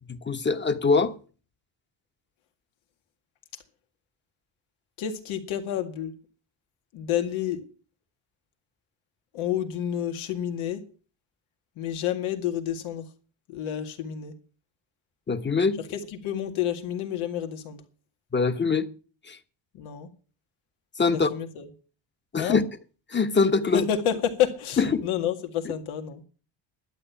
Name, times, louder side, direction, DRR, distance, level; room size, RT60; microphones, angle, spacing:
voice 1, 0.0-1.1 15.3-15.8 18.3-18.9 19.2-19.4 21.0-21.3 22.3-22.6 23.1-23.8 24.8-25.1, left 4 dB, 25° left, 1.1 m, -23 dB
voice 2, 5.0-6.1 6.9-7.6 9.3-10.8 11.8-13.1 13.5-14.3 16.2-17.8 19.7-20.1 21.1-21.7 22.4-22.6 23.7-26.2, left 10 dB, 90° left, 2.1 m, -29 dB
11.5 x 8.8 x 7.0 m
cardioid pair, 105°, 48 cm